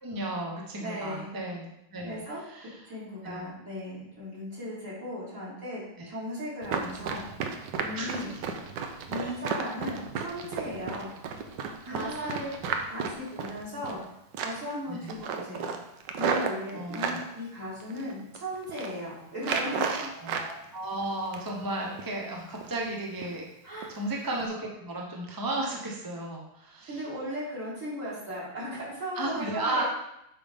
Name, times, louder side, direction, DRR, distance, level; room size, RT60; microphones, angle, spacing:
voice 1, 0.0-2.2 2.5-2.8 3.2-3.4 6.0-6.1 7.9-8.1 9.2-9.3 11.8-12.5 14.9-15.1 16.7-17.3 20.2-27.0 29.1-29.8, right 2 dB, 20° right, -1 dB, 0.5 m, -34 dB
voice 2, 0.8-1.3 2.0-2.4 2.9-7.2 7.7-8.4 9.1-11.1 11.8-15.7 16.1-20.1 23.6-23.9 26.8-29.8, equal, 40° right, -8 dB, 3.7 m, -37 dB
Run, 6.6-14.0 14.3-14.8 15.1-17.2 17.8-18.4 18.6-18.9 19.4-20.5 20.8-21.6 22.0-22.2 22.6-22.9 23.2-23.4 23.8-24.0 24.3-24.5, right 6 dB, 70° right, 1.3 m, -33 dB
8.5 x 5.5 x 3.6 m, 0.80 s
omnidirectional pair, 2.1 m